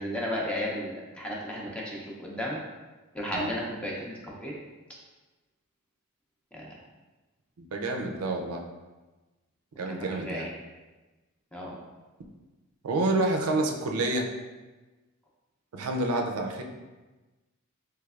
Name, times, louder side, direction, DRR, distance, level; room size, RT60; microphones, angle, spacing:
voice 1, 0.0-2.6 3.1-4.5 6.5-6.7 9.9-10.5 11.5-11.7, equal, 5° left, -4 dB, 0.5 m, -34 dB
voice 2, 7.6-8.6 9.8-10.5 12.8-14.3 15.7-16.6, right 2 dB, 90° right, 3 dB, 0.4 m, -28 dB
3.3 x 3.2 x 2.4 m, 1.2 s
head